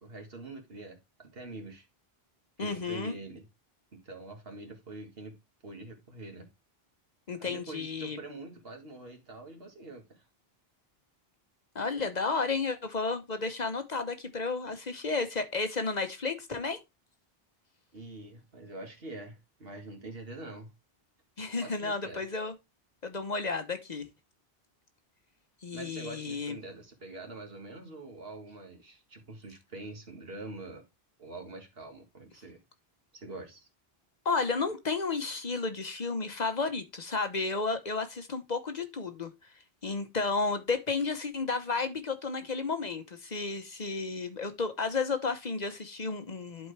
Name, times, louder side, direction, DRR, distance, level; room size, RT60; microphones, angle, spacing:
voice 1, 0.0-1.9 2.6-3.5 3.9-5.4 5.6-6.5 7.4-10.2 17.9-20.7 21.6-22.2 25.7-30.8 31.2-32.6 33.1-33.7, right 2 dB, 70° right, 2.1 m, -45 dB
voice 2, 2.6-3.1 7.3-8.2 11.7-16.8 21.4-22.5 23.0-24.1 25.6-26.5 34.2-39.3 39.8-46.7, left 4 dB, 45° left, 1.0 m, -32 dB
11.5 x 4.5 x 3.3 m
omnidirectional pair, 1.0 m